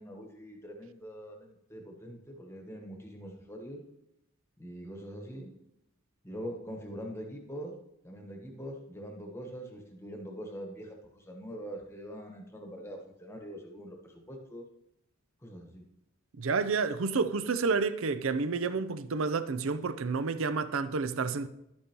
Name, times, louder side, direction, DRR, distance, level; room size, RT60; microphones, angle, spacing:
voice 1, 0.0-3.8 4.6-5.5 6.2-7.7 8.0-14.6 15.4-15.8, equal, 10° left, 1.2 m, -43 dB
voice 2, 16.3-21.5, right 4 dB, 60° right, 0.5 m, -30 dB
11.0 x 8.5 x 3.0 m
head